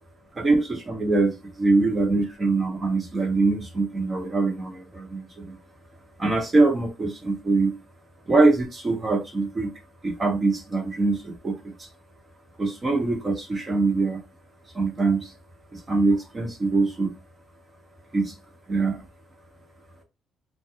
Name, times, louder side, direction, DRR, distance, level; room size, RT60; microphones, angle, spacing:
voice 1, 0.3-5.5 6.2-7.7 8.3-9.7 10.0-11.9 12.6-14.2 14.7-15.3 15.7-17.1 18.1-18.3 18.7-19.0, right 3 dB, 30° right, 2 dB, 1.0 m, -23 dB
2.4 x 2.2 x 2.8 m, 0.26 s
cardioid pair, 90°, 0 cm